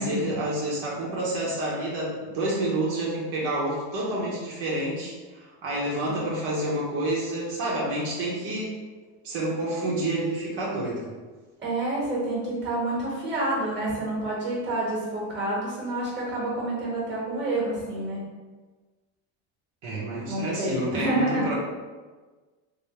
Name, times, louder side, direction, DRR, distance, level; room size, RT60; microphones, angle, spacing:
voice 1, 0.0-8.7 9.2-11.1 19.8-21.5, right 1 dB, 70° right, -6 dB, 1.2 m, -29 dB
voice 2, 11.6-18.2 20.3-21.4, right 1 dB, 25° right, -5 dB, 1.4 m, -28 dB
3.2 x 3.0 x 3.0 m, 1.4 s
supercardioid pair, 115°, 41 cm